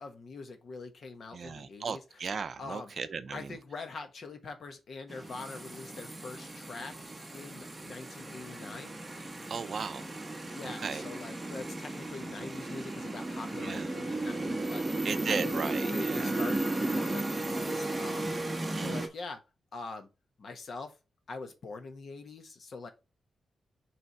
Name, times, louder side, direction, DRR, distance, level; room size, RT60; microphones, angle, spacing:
voice 1, 0.0-2.0 2.6-2.9 3.3-6.9 7.3-8.9 10.5-15.6 15.9-18.3 18.8-19.4 19.7-20.1 20.4-21.0 21.3-22.9, left 3 dB, 45° left, 1.2 m, -43 dB
voice 2, 1.3-3.6 9.5-10.1 10.6-11.1 13.6-13.9 15.0-16.4 18.6-19.0, right 5 dB, 40° right, 0.5 m, -36 dB
sound 1, 5.1-19.1, right 2 dB, 10° right, 1.1 m, -35 dB
6.8 x 3.4 x 4.4 m
wide cardioid pair, 180°, 0 cm